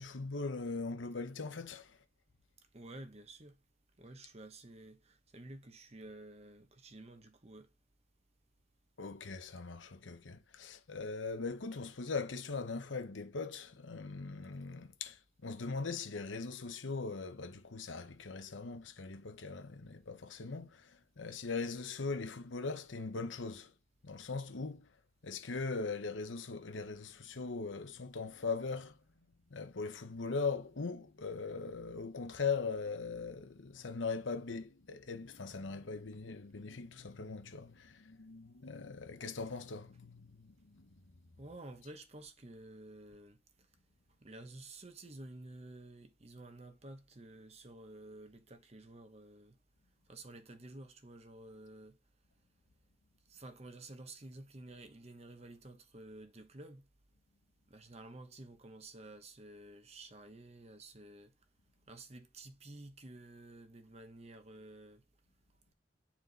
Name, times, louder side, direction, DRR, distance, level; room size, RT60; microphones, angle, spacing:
voice 1, 0.0-2.0 9.0-23.7 24.0-24.9 25.2-29.0 29.5-41.0, left 4 dB, 90° left, 0.9 m, -40 dB
voice 2, 2.7-3.6 4.0-7.7 41.4-43.4 44.2-49.6 50.1-52.0 53.3-56.9 57.7-61.3 61.9-65.0, right 2 dB, 35° right, 1.0 m, -52 dB
9.4 x 4.4 x 4.0 m
head